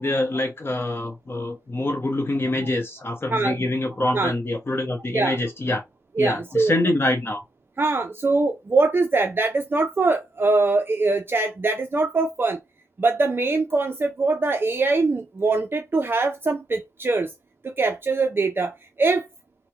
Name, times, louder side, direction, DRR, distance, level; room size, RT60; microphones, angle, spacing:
voice 1, 0.0-5.8 6.2-7.4, left 1 dB, 40° left, 0.7 m, -25 dB
voice 2, 6.2-6.7 7.8-12.6 13.0-17.3 17.6-19.3, right 3 dB, 40° right, 0.4 m, -22 dB
3.4 x 2.0 x 2.9 m
wide cardioid pair, 85°, 6 cm